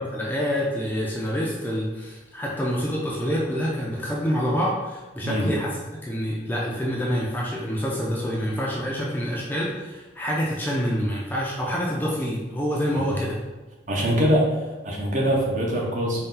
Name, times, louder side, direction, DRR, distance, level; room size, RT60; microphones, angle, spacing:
voice 1, 0.0-5.8 6.0-13.4, equal, 10° left, -4 dB, 0.4 m, -27 dB
voice 2, 13.9-16.2, equal, 40° right, -2 dB, 0.7 m, -23 dB
4.0 x 2.2 x 3.7 m, 1.2 s
head